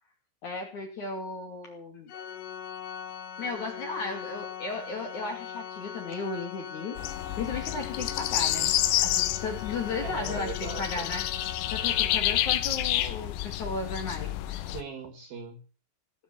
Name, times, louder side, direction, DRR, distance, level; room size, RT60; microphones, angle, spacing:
voice 1, 0.4-2.1 3.4-7.0 7.4-8.7 9.0-11.3 11.7-14.3, left 3 dB, 45° left, 2 dB, 3.3 m, -35 dB
Organ, 2.1-12.8, left 8 dB, 65° left, 2.2 m, -41 dB
sound 1, 7.0-14.8, left 14 dB, 85° left, 3.7 m, -29 dB
voice 2, 10.0-11.2 14.5-15.6, right 5 dB, 55° right, 7 dB, 3.5 m, -40 dB
18.0 x 7.6 x 8.1 m, 0.38 s
omnidirectional pair, 5.8 m